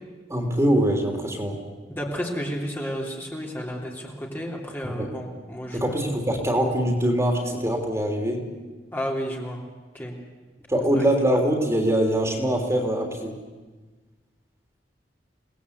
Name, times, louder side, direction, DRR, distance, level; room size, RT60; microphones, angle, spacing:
voice 1, 0.3-1.6 4.8-5.1 5.7-8.4 10.7-13.3, right 1 dB, 15° right, 2 dB, 3.5 m, -23 dB
voice 2, 1.9-6.0 8.9-9.6 9.9-10.1 10.9-11.0, equal, 10° left, -2 dB, 3.0 m, -32 dB
28.5 x 19.5 x 8.4 m, 1.3 s
head